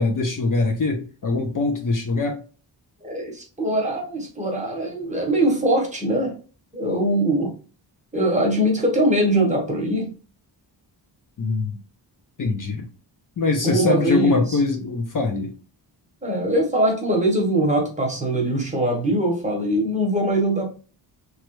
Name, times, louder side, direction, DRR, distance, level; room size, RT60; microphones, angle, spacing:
voice 1, 0.0-2.4 11.4-11.8 12.4-12.9 13.4-15.5, left 3 dB, 45° left, 3 dB, 0.6 m, -22 dB
voice 2, 3.0-6.3 6.7-7.6 8.1-10.1 13.6-14.6 16.2-20.7, right 1 dB, 15° right, 0 dB, 1.0 m, -22 dB
3.0 x 2.3 x 3.0 m, 0.36 s
wide cardioid pair, 135°, 46 cm